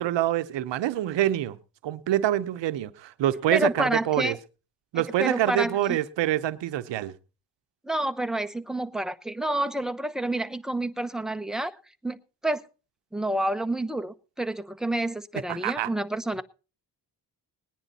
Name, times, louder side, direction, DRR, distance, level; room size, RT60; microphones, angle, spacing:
voice 1, 0.0-1.6 1.8-4.4 4.9-7.1 15.5-15.9, right 13 dB, 90° right, 0.8 m, -26 dB
voice 2, 3.5-4.4 4.9-6.0 7.8-11.7 12.0-12.2 12.4-12.6 13.1-16.4, right 1 dB, ahead, 0.9 m, -29 dB
19.0 x 10.0 x 4.1 m
cardioid pair, 60°, 42 cm